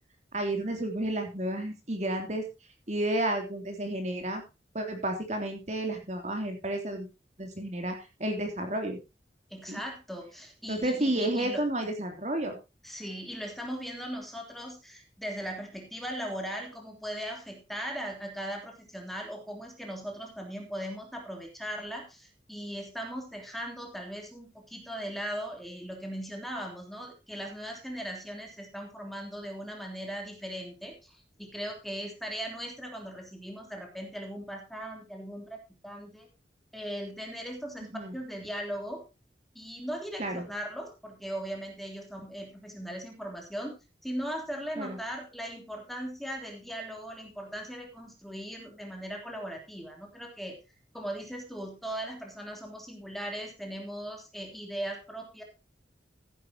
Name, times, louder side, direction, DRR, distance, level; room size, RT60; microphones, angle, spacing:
voice 1, 0.3-2.5 2.9-4.4 4.7-7.1 7.4-9.0 9.7-9.8 10.7-12.6 37.9-38.1 40.2-40.5 44.8-45.0, right 1 dB, 40° right, 4 dB, 3.0 m, -31 dB
voice 2, 9.5-11.6 12.8-36.3 36.7-39.0 39.5-43.8 44.0-50.6 50.9-55.4, equal, ahead, 2 dB, 3.4 m, -38 dB
15.0 x 11.0 x 2.9 m, 0.27 s
head